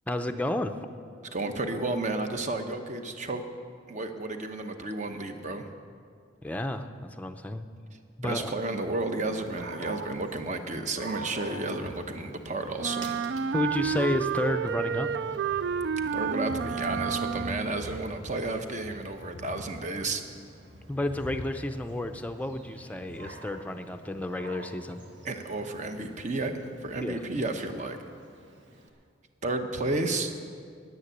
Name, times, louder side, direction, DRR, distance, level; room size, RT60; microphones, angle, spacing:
voice 1, 0.1-0.7 6.4-7.7 8.2-8.5 13.5-15.1 20.9-25.0 27.0-27.2, left 1 dB, 10° left, 6 dB, 0.5 m, -31 dB
voice 2, 1.3-3.4 3.9-5.7 8.2-13.2 16.1-20.2 25.2-28.0 29.4-30.3, right 2 dB, 40° right, 6 dB, 0.9 m, -32 dB
Dog, 9.3-28.9, right 1 dB, 80° right, 1.8 m, -45 dB
Wind instrument woodwind instrument, 12.8-17.8, right 6 dB, 60° right, 0.3 m, -30 dB
9.6 x 8.9 x 9.9 m, 2.2 s
head